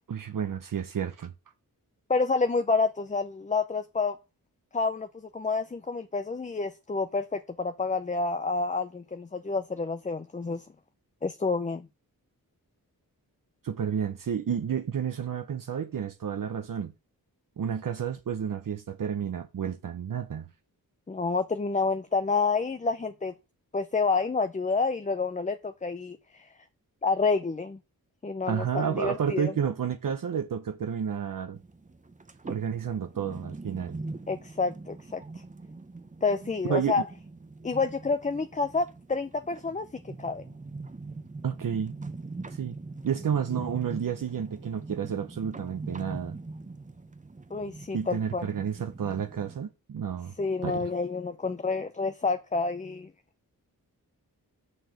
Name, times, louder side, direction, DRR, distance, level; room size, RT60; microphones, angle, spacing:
voice 1, 0.1-1.3 13.6-16.9 17.6-20.5 28.5-31.6 32.4-34.0 36.6-36.9 41.4-41.9 42.5-42.8 43.0-46.4 47.9-50.3 50.6-50.9, right 8 dB, 65° right, 0.8 m, -31 dB
voice 2, 2.1-4.2 4.7-10.7 11.2-11.9 21.1-23.3 23.7-26.4 27.0-27.8 28.2-29.5 34.3-35.2 36.2-37.1 37.6-40.4 47.5-48.5 50.4-53.1, left 4 dB, 20° left, 0.5 m, -29 dB
sound 1, 31.5-49.6, right 3 dB, 20° right, 0.8 m, -42 dB
6.5 x 4.7 x 6.5 m
wide cardioid pair, 95°, 36 cm